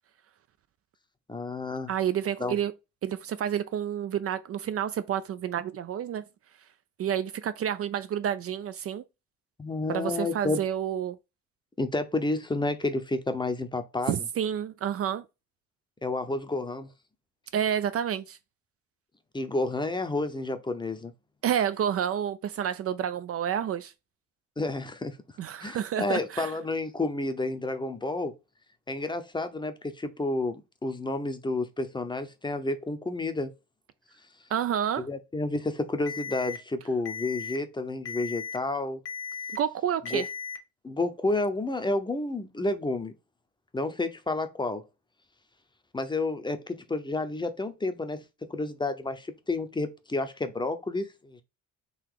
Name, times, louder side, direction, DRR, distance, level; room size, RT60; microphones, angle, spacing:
voice 1, 1.3-1.9 2.4-2.6 9.6-10.6 11.8-14.1 16.0-16.9 19.3-21.1 24.6-25.2 25.6-28.3 28.9-33.5 35.0-39.0 40.1-40.2 40.8-43.1 43.7-44.8 45.9-48.2 48.5-51.4, left 2 dB, 15° left, 0.7 m, -30 dB
voice 2, 1.9-2.7 3.0-6.2 7.0-9.0 9.9-11.2 14.1-15.2 17.5-18.4 21.4-23.9 25.4-26.5 34.5-35.1 39.5-40.3, right 9 dB, 45° right, 0.4 m, -29 dB
Alarm, 36.1-36.6 37.1-37.6 38.1-38.6 39.1-39.6 40.1-40.6, left 6 dB, 50° left, 1.2 m, -36 dB
4.0 x 2.9 x 4.6 m
cardioid pair, 105°, 32 cm